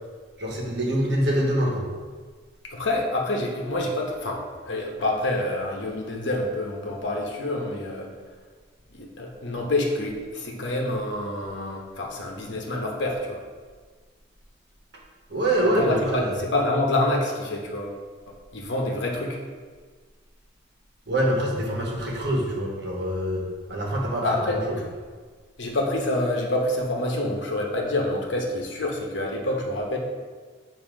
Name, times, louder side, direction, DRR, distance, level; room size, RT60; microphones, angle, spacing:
voice 1, 0.4-1.8 15.3-16.3 21.1-24.8, right 1 dB, 60° right, -3 dB, 1.2 m, -25 dB
voice 2, 2.6-8.1 8.9-13.4 15.6-18.0 18.5-19.4 24.2-24.6 25.6-30.0, left 1 dB, 70° left, 0 dB, 1.0 m, -27 dB
7.2 x 2.8 x 5.1 m, 1.5 s
head